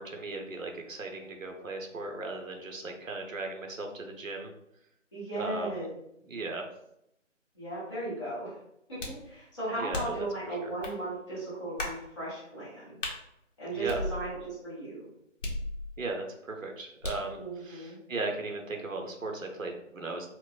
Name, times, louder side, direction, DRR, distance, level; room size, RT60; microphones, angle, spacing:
voice 1, 0.0-4.5 5.4-5.9 6.3-6.7 9.8-10.3 10.6-10.7 13.7-14.1 16.0-20.3, right 3 dB, 85° right, 3 dB, 0.8 m, -37 dB
voice 2, 5.1-5.9 7.5-8.6 8.9-13.0 13.6-15.1 17.3-18.0, right 2 dB, 25° left, -11 dB, 1.2 m, -36 dB
sound 1, 9.0-9.3 9.9-10.3 10.8-11.0 11.8-12.0 13.0-13.2 13.9-14.5 15.4-16.1 17.0-17.3, left 1 dB, 65° left, 0.9 m, -36 dB
4.3 x 2.0 x 2.4 m, 0.77 s
figure-of-eight pair, 170°, 39 cm